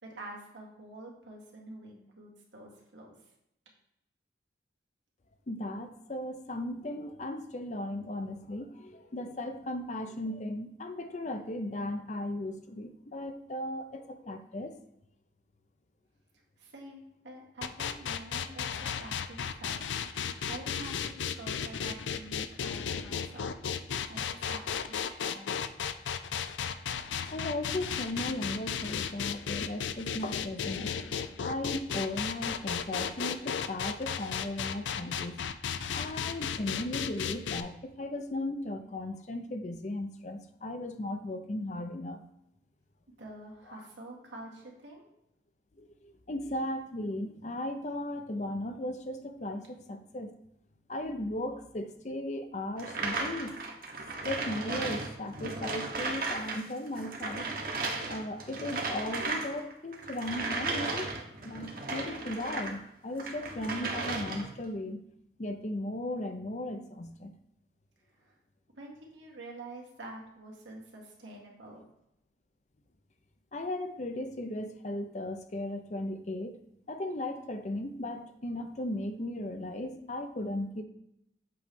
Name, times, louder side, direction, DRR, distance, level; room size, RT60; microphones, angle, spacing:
voice 1, 0.0-3.2 16.6-18.7 19.0-19.8 20.5-23.5 24.1-25.6 43.2-45.0 68.1-68.4 68.8-71.8, right 2 dB, 85° right, -1 dB, 1.8 m, -47 dB
voice 2, 5.5-14.7 27.3-30.9 31.4-35.4 35.9-42.2 43.7-43.8 45.8-50.3 50.9-53.6 54.2-57.5 58.1-61.1 61.4-65.0 65.4-67.3 73.5-76.6 76.9-80.8, left 1 dB, 40° left, 7 dB, 0.6 m, -36 dB
sound 1, 17.6-37.6, left 7 dB, 90° left, 0.4 m, -34 dB
sound 2, 52.8-56.6 56.9-62.8 63.1-64.6, right 3 dB, 50° right, 1.1 m, -35 dB
7.7 x 3.2 x 5.2 m, 0.80 s
head